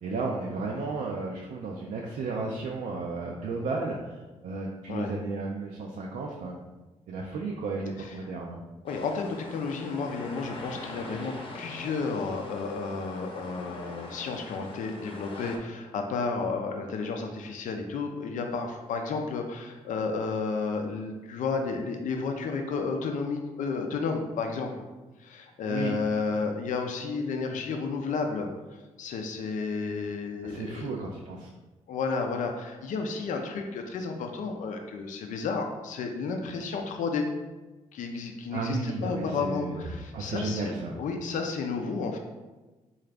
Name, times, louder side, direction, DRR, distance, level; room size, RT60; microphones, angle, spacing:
voice 1, 0.0-6.6 7.1-8.6 25.6-26.0 30.4-31.5 38.5-41.0, right 3 dB, 70° right, -1 dB, 0.4 m, -33 dB
voice 2, 8.8-24.8 25.2-28.5 29.0-30.9 31.9-37.3 37.9-42.2, left 4 dB, 70° left, 4 dB, 0.4 m, -32 dB
sound 1, 8.9-15.6, left 2 dB, 40° left, 0.7 m, -42 dB
3.8 x 2.4 x 3.3 m, 1.2 s
supercardioid pair, 65°, 14 cm